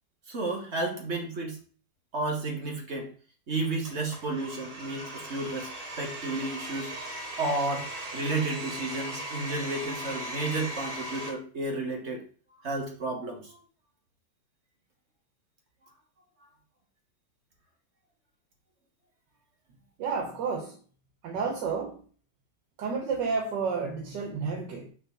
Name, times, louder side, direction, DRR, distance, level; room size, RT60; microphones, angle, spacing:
voice 1, 0.3-1.6 2.1-3.1 3.5-5.7 6.0-6.9 7.4-7.9 8.1-12.2 12.6-13.6, right 2 dB, 40° right, 1.6 m, -32 dB
Domestic sounds home sounds, 3.8-11.3, right 1 dB, 60° right, 3.0 m, -38 dB
voice 2, 20.0-20.8 21.2-22.0 22.8-24.9, right 5 dB, 85° right, 1.5 m, -31 dB
6.0 x 3.6 x 5.8 m
omnidirectional pair, 1.9 m